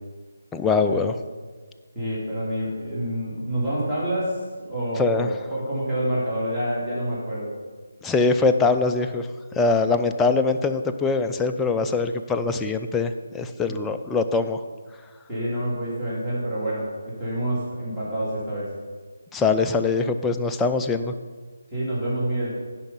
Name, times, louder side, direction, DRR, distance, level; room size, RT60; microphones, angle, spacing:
voice 1, 0.5-1.1 5.0-5.3 8.0-9.3 9.6-14.6 19.3-21.1, left 4 dB, 5° left, 6 dB, 0.4 m, -22 dB
voice 2, 1.9-7.5 13.6-13.7 15.3-18.7 21.7-22.5, right 1 dB, 10° right, -10 dB, 2.7 m, -27 dB
10.5 x 4.9 x 5.5 m, 1.5 s
figure-of-eight pair, 150°, 0 cm